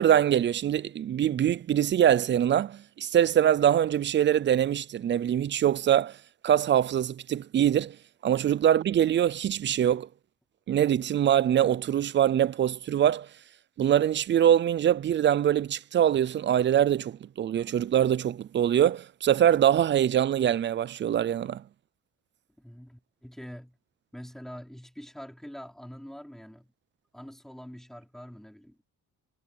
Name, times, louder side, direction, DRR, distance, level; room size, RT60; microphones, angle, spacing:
voice 1, 0.0-6.1 6.4-8.0 8.2-10.1 10.7-13.3 13.8-21.6, right 10 dB, 30° right, 0.5 m, -23 dB
voice 2, 22.6-23.8 24.1-26.7 27.1-28.8, equal, ahead, 5.2 m, -44 dB
cardioid pair, 145°, 36 cm